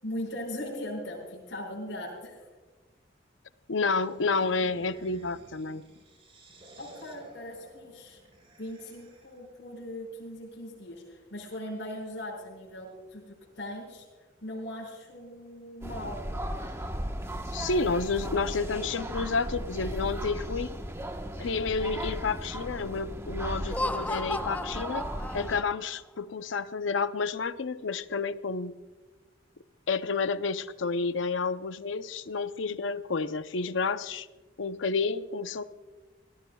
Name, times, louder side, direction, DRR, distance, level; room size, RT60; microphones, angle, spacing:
voice 1, 0.0-2.4 6.8-8.2 8.6-14.0 14.4-16.4, left 1 dB, 65° left, -4 dB, 5.7 m, -39 dB
voice 2, 3.7-5.8 17.5-20.8 21.4-25.1 25.3-28.7 29.9-34.3 34.6-35.6, left 4 dB, 90° left, 12 dB, 0.6 m, -30 dB
sound 1, 4.0-9.5, right 1 dB, 30° right, 3.6 m, -53 dB
sound 2, 15.8-25.6, right 1 dB, 15° right, 1.1 m, -36 dB
Laughter, 23.6-25.9, left 1 dB, 10° left, 0.4 m, -34 dB
25.5 x 17.0 x 2.3 m, 1.3 s
head